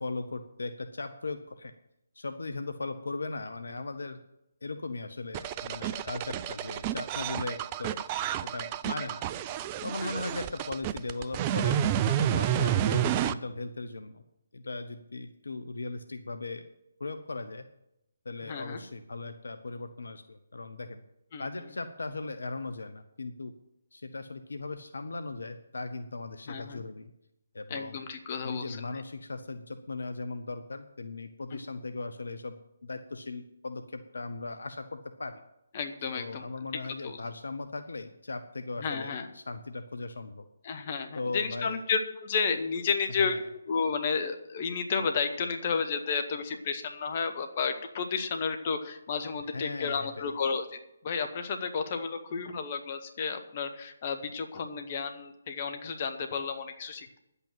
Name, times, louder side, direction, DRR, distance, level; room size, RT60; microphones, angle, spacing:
voice 1, 0.0-1.7 2.1-4.2 4.6-8.0 8.4-9.3 9.8-14.2 14.5-16.6 17.0-17.6 18.2-21.0 21.4-23.5 23.9-27.1 27.5-28.0 28.4-35.4 36.1-40.5 41.1-41.8 43.2-43.4 49.5-50.3, left 3 dB, 65° left, 9 dB, 0.8 m, -38 dB
sound 1, 5.3-13.3, right 10 dB, 25° right, 0.4 m, -30 dB
voice 2, 18.4-18.8 21.3-21.7 26.5-26.8 27.7-29.0 31.5-31.6 35.7-36.5 37.0-37.2 38.8-39.3 40.6-50.7 51.0-57.2, left 5 dB, 35° left, 7 dB, 1.3 m, -32 dB
10.5 x 8.3 x 7.5 m, 0.85 s
figure-of-eight pair, 140°, 0 cm